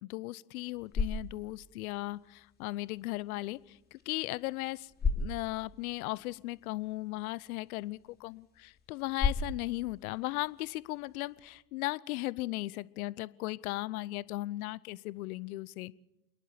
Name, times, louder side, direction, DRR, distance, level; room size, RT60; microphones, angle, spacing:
voice 1, 0.0-16.0, left 19 dB, 60° left, 20 dB, 0.9 m, -37 dB
sound 1, 0.5-11.6, left 4 dB, 20° left, 3.6 m, -39 dB
28.0 x 11.0 x 8.9 m, 0.89 s
hypercardioid pair, 90°, 50 cm